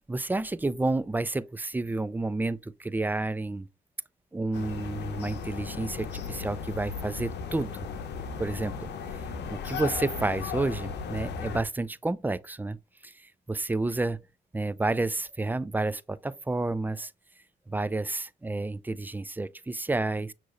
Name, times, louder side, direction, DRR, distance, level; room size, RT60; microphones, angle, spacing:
voice 1, 0.1-3.7 4.3-7.9 8.4-9.2 9.5-12.8 13.0-14.2 14.5-17.1 17.7-20.3, right 2 dB, 10° right, 0.3 m, -30 dB
sound 1, 4.5-11.6, left 5 dB, 75° left, 0.7 m, -36 dB
6.1 x 2.9 x 2.5 m
supercardioid pair, 50°, 18 cm